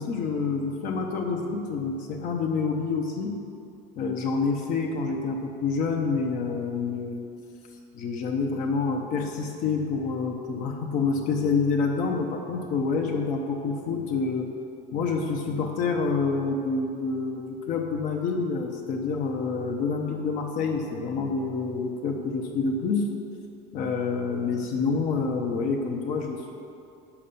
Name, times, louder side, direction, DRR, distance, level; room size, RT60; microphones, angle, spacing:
voice 1, 0.0-3.4 4.0-7.2 7.9-14.5 14.9-23.1 23.7-26.5, left 4 dB, 45° left, 1 dB, 1.0 m, -27 dB
9.1 x 7.3 x 6.9 m, 2.6 s
cardioid pair, 175°, 18 cm